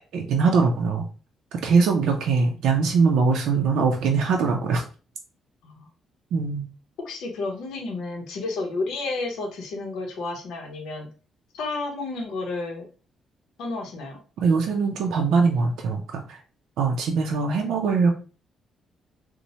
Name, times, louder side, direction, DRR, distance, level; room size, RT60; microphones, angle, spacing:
voice 1, 0.1-1.0 1.5-4.8 6.3-6.6 14.4-16.4 16.8-18.1, right 4 dB, 80° right, 2 dB, 0.4 m, -22 dB
voice 2, 7.0-11.1 11.5-12.9 13.6-14.2, left 3 dB, 80° left, 2 dB, 0.6 m, -31 dB
3.0 x 2.0 x 2.7 m, 0.36 s
cardioid pair, 90°, 0 cm